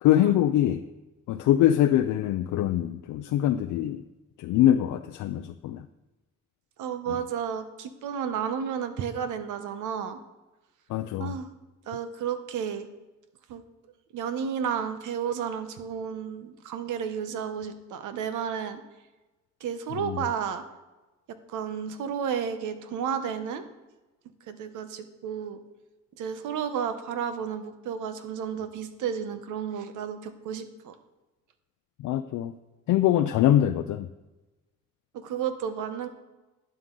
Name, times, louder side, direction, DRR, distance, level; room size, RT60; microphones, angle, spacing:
voice 1, 0.0-0.8 1.3-4.0 4.4-5.8 10.9-11.3 20.0-20.2 32.0-32.5 32.9-34.1, left 12 dB, 80° left, 8 dB, 0.5 m, -23 dB
voice 2, 6.8-10.2 11.2-11.5 11.9-12.9 13.5-13.6 14.1-18.8 19.6-20.6 21.5-23.6 24.5-25.6 26.2-30.9 35.1-36.1, right 7 dB, 85° right, 10 dB, 1.0 m, -32 dB
11.5 x 7.6 x 3.8 m, 1.1 s
cardioid pair, 90°, 30 cm